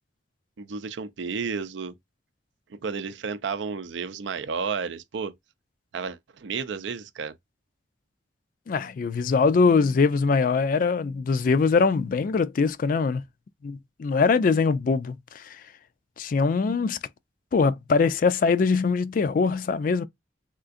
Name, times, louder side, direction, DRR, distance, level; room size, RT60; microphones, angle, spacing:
voice 1, 0.6-1.9 2.7-5.3 5.9-7.3, right 5 dB, 85° right, 0.5 m, -32 dB
voice 2, 8.7-13.2 13.6-15.4 16.2-17.0 17.5-20.0, left 4 dB, 50° left, 0.3 m, -22 dB
3.6 x 2.5 x 2.4 m
head